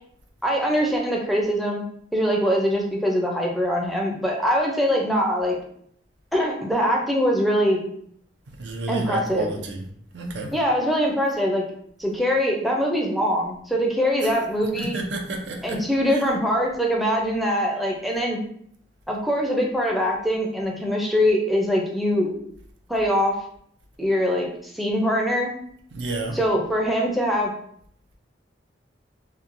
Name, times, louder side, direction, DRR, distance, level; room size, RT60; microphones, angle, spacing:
voice 1, 0.4-1.8 2.1-5.6 6.3-7.9 8.9-9.5 10.5-11.6 12.0-15.0 15.6-18.4 19.1-22.3 22.9-23.4 24.0-24.5 24.7-25.5 26.3-27.5, equal, ahead, -1 dB, 0.4 m, -23 dB
voice 2, 8.6-9.8 10.1-10.5 14.2-14.3 14.8-15.8 16.1-16.2 25.9-26.4, right 2 dB, 85° right, 3 dB, 0.5 m, -30 dB
2.9 x 2.2 x 2.5 m, 0.65 s
head